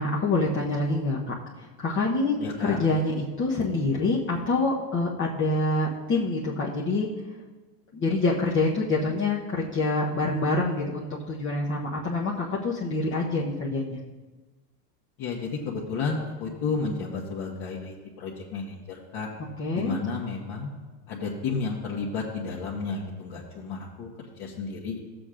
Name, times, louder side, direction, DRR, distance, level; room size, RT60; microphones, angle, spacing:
voice 1, 0.0-7.1 7.9-14.0 19.6-20.0, left 2 dB, 25° left, -5 dB, 0.9 m, -26 dB
voice 2, 2.4-2.8 15.2-19.3 19.7-20.7 21.1-24.1 24.4-25.0, left 4 dB, 50° left, -5 dB, 1.5 m, -32 dB
14.5 x 7.7 x 2.5 m, 1.2 s
supercardioid pair, 120°, 50 cm